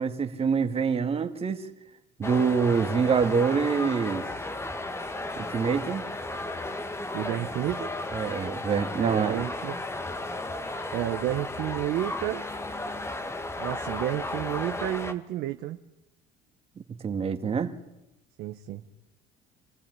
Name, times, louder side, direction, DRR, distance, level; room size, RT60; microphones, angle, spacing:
voice 1, 0.0-1.6 2.2-4.3 5.4-6.0 8.1-9.4 17.0-17.7, right 6 dB, 35° right, 6 dB, 2.2 m, -25 dB
sound 1, 2.2-15.1, left 2 dB, 15° left, 1.6 m, -34 dB
voice 2, 7.1-7.9 9.0-9.8 10.9-12.4 13.6-15.8 18.4-18.8, right 13 dB, 70° right, 6 dB, 1.0 m, -31 dB
25.5 x 15.5 x 9.6 m, 0.93 s
supercardioid pair, 95°, 17 cm